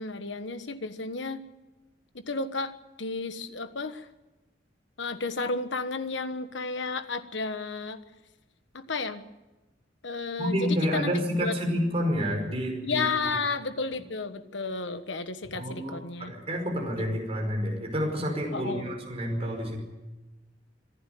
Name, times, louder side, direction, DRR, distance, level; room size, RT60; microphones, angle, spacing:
voice 1, 0.0-1.4 2.1-4.1 5.0-8.0 8.7-9.2 10.0-11.5 12.8-16.3 18.5-18.9, left 4 dB, 65° left, 10 dB, 1.3 m, -32 dB
voice 2, 10.4-13.0 15.5-19.8, equal, 30° right, 0 dB, 5.1 m, -29 dB
25.0 x 11.5 x 9.4 m, 1.1 s
head